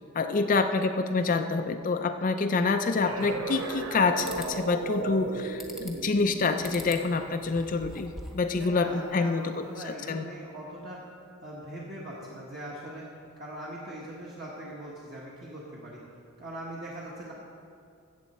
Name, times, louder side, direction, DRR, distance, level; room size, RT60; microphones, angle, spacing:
voice 1, 0.1-9.5 9.8-10.2, left 4 dB, 40° left, 7 dB, 0.4 m, -27 dB
sound 1, 3.1-8.4, right 3 dB, 80° right, 0.9 m, -36 dB
sound 2, 3.2-3.9 4.2-4.5 5.6-6.1 6.6-7.1 7.4-8.5, equal, ahead, 0.8 m, -43 dB
voice 2, 8.6-11.0 11.4-13.1 13.4-16.0 16.4-17.3, right 1 dB, 45° right, -6 dB, 1.4 m, -41 dB
14.0 x 8.0 x 4.3 m, 2.4 s
head